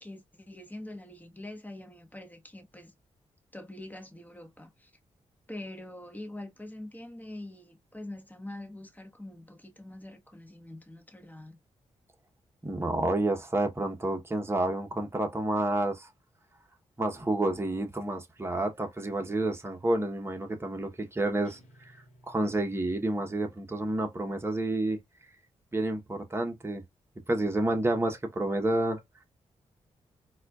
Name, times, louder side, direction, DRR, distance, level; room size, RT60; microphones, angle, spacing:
voice 1, 0.0-2.9 3.5-4.9 5.5-11.6, left 1 dB, 15° left, 1.1 m, -44 dB
voice 2, 12.6-16.1 17.0-21.6 22.3-25.0 25.7-26.8 27.3-29.0, right 2 dB, 20° right, 1.0 m, -29 dB
Guitar, 21.4-24.0, equal, 75° left, 1.2 m, -60 dB
4.2 x 2.3 x 2.4 m
cardioid pair, 65°, 12 cm